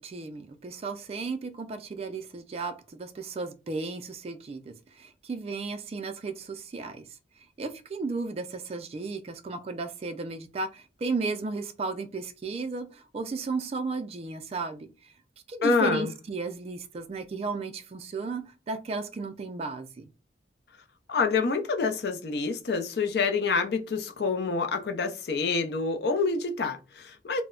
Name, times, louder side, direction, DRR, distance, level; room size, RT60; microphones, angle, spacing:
voice 1, 0.0-7.0 7.6-14.9 15.5-20.1, right 3 dB, 35° right, 0.3 m, -34 dB
voice 2, 15.6-16.1 21.1-27.4, left 4 dB, 65° left, 0.5 m, -27 dB
2.1 x 2.0 x 3.6 m
head